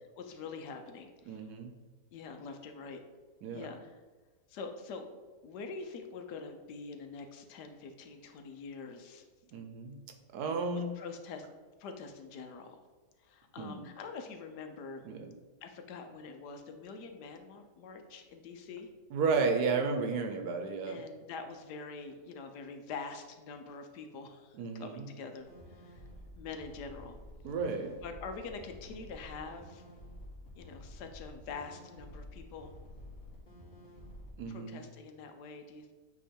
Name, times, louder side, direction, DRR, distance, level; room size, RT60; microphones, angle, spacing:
voice 1, 0.2-1.4 2.1-3.0 3.5-4.0 4.5-5.0 5.4-9.2 10.7-11.5 11.8-12.8 13.2-15.1 15.6-18.9 20.9-26.0 26.3-27.2 28.0-29.8 30.6-32.7 34.5-35.9, left 4 dB, 75° left, 6 dB, 1.2 m, -45 dB
voice 2, 1.3-1.7 3.4-3.7 9.5-10.0 10.3-10.9 13.6-13.9 15.0-15.3 19.1-21.0 24.5-25.1 27.4-28.0 34.4-34.9, right 4 dB, 70° right, 5 dB, 1.2 m, -33 dB
sound 1, 25.4-34.3, left 1 dB, 45° left, 2.3 m, -50 dB
8.3 x 3.0 x 4.3 m, 1.3 s
omnidirectional pair, 1.8 m